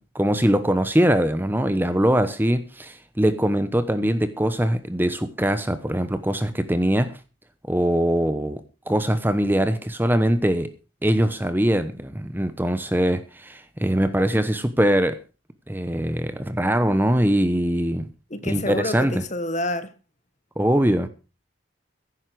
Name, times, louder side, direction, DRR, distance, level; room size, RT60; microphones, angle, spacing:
voice 1, 0.1-7.2 7.6-8.6 8.9-10.7 11.0-15.2 15.7-18.1 18.4-19.2 20.6-21.1, equal, 10° right, 0.9 m, -22 dB
voice 2, 18.3-19.9, left 1 dB, 35° left, 1.4 m, -28 dB
15.5 x 11.0 x 4.8 m
head